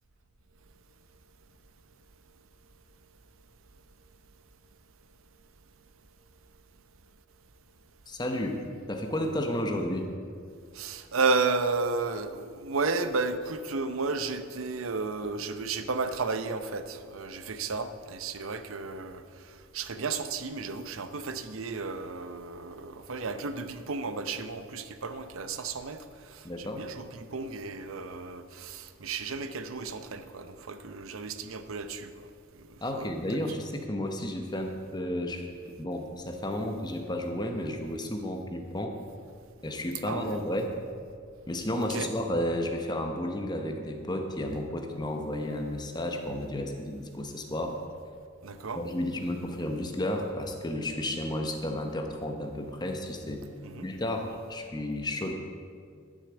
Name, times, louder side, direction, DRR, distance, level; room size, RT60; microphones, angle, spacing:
voice 1, 8.1-10.1 26.4-26.8 32.8-39.0 39.6-40.7 41.5-47.7 48.8-53.4 53.8-55.3, left 1 dB, 20° left, 0.8 m, -32 dB
voice 2, 10.7-19.2 19.7-26.0 26.3-32.1 32.9-33.4 40.0-40.4 41.8-42.1 48.4-48.8 53.6-53.9, right 4 dB, 80° right, 0.7 m, -33 dB
12.0 x 6.5 x 7.8 m
head